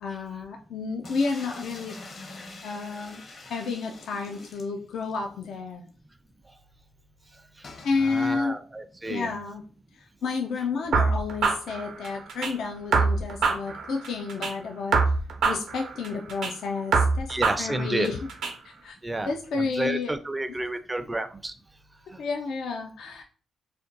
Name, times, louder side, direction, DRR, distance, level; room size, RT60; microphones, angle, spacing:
voice 1, 0.0-2.0 2.6-5.9 7.8-8.6 9.1-9.6 9.9-15.0 15.4-18.2 18.6-19.0 19.2-20.1 22.2-23.2, left 4 dB, 75° left, 2 dB, 0.3 m, -31 dB
sound 1, 1.0-5.2 5.6-5.7 5.9-6.0 7.6-8.0, left 2 dB, 45° left, 0.7 m, -45 dB
voice 2, 7.9-9.3 17.3-18.1 19.0-21.5 22.1-22.2, right 1 dB, 15° right, 10 dB, 0.3 m, -31 dB
sound 2, 10.9-12.5 12.9-14.5 14.9-16.5 16.9-18.5, right 4 dB, 80° right, 0.6 m, -25 dB
2.5 x 2.1 x 3.8 m, 0.42 s
cardioid pair, 95°, 0 cm